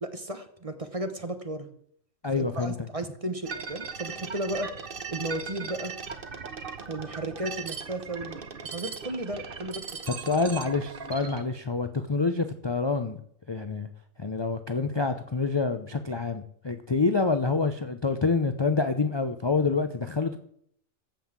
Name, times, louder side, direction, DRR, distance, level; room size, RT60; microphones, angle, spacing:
voice 1, 0.0-1.7 2.3-5.9 6.9-9.9, right 1 dB, 30° right, 8 dB, 1.0 m, -34 dB
voice 2, 2.2-2.7 10.1-13.2 13.5-13.9 14.2-20.4, left 4 dB, 30° left, 8 dB, 0.6 m, -27 dB
sound 1, 3.5-11.4, right 5 dB, 45° right, 1.2 m, -38 dB
14.5 x 5.7 x 7.4 m, 0.66 s
omnidirectional pair, 1.3 m